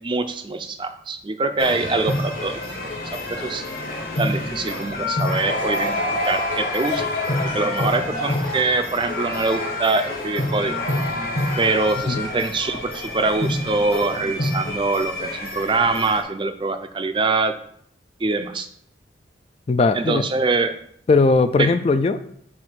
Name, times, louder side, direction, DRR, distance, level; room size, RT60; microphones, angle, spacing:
voice 1, 0.0-3.7 4.2-6.0 6.2-7.0 7.4-10.8 11.6-17.5 18.2-18.7 19.9-20.7 21.6-21.7, right 3 dB, 25° right, 8 dB, 0.5 m, -24 dB
sound 1, 1.6-16.2, left 1 dB, 50° left, 1.2 m, -27 dB
Laughter / Crowd, 5.4-10.8 11.4-11.5 12.3-12.5, left 1 dB, 80° left, 1.6 m, -32 dB
voice 2, 19.7-20.2 21.1-22.2, left 3 dB, 35° left, 11 dB, 0.3 m, -18 dB
7.5 x 2.6 x 5.7 m, 0.66 s
head